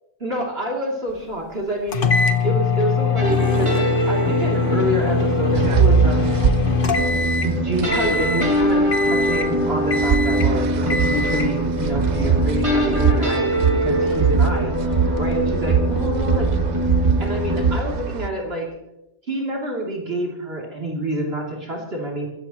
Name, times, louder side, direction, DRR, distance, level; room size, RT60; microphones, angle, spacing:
voice 1, 0.2-6.4 7.4-16.6 17.2-18.7 19.3-22.3, right 1 dB, 45° right, -2 dB, 3.3 m, -28 dB
sound 1, 1.9-7.6 7.9-8.5 8.9-9.6 9.9-10.5 10.9-11.5, left 6 dB, 40° left, 1.2 m, -23 dB
sound 2, 3.2-17.8, right 1 dB, 20° right, 2.6 m, -23 dB
sound 3, 5.6-18.3, right 6 dB, 60° right, 0.4 m, -23 dB
22.5 x 16.5 x 3.1 m, 0.92 s
omnidirectional pair, 1.4 m